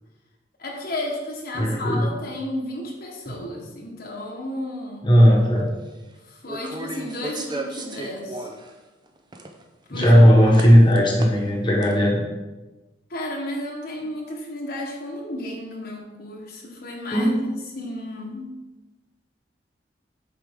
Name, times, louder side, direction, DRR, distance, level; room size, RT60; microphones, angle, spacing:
voice 1, 0.6-5.1 6.2-8.5 9.9-10.1 10.4-10.5 13.1-18.6, left 1 dB, 55° left, -1 dB, 1.2 m, -33 dB
voice 2, 1.5-2.1 5.0-5.6 9.9-12.2 17.1-17.3, equal, 25° left, -2 dB, 1.2 m, -16 dB
sound 1, 5.6-5.7 6.5-8.7 9.1-9.6 10.0-10.1 10.5-11.5 11.8-11.9, right 2 dB, 25° right, 0.6 m, -34 dB
7.7 x 4.9 x 3.6 m, 1.1 s
head